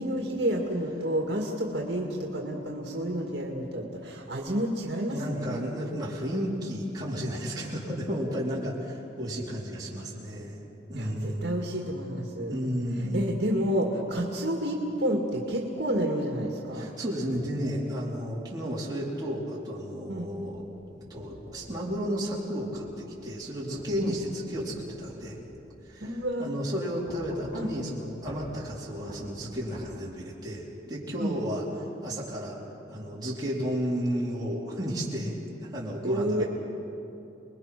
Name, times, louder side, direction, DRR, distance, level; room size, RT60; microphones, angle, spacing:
voice 1, 0.0-5.6 10.9-12.5 13.1-16.9 20.1-20.3 24.0-24.2 26.0-26.5 27.5-27.7 31.2-31.4 36.0-36.4, right 1 dB, 60° right, 0 dB, 2.2 m, -30 dB
voice 2, 5.1-10.6 10.9-11.6 12.5-13.3 16.7-20.6 21.1-25.4 25.8-31.6 32.0-32.6 32.9-36.4, equal, 20° right, -5 dB, 4.3 m, -33 dB
sound 1, 20.3-21.7 22.7-22.9 23.8-25.8 26.0-26.2 27.1-27.9 28.3-28.5 29.1-29.9, equal, 40° left, 5.6 m, -45 dB
29.5 x 21.0 x 6.1 m, 2.9 s
head